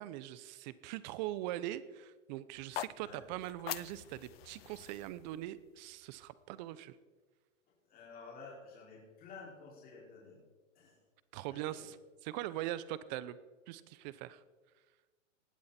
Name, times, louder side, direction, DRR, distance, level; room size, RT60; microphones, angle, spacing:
voice 1, 0.0-7.0 11.3-12.0 12.2-13.4 13.7-14.4, right 14 dB, 35° right, 16 dB, 0.9 m, -41 dB
sound 1, 2.5-6.7, left 15 dB, 50° left, 0.4 m, -46 dB
voice 2, 7.8-10.4 10.7-11.0 11.5-11.9, left 4 dB, 25° left, -4 dB, 5.5 m, -52 dB
19.5 x 12.5 x 4.4 m, 1.3 s
hypercardioid pair, 140°, 39 cm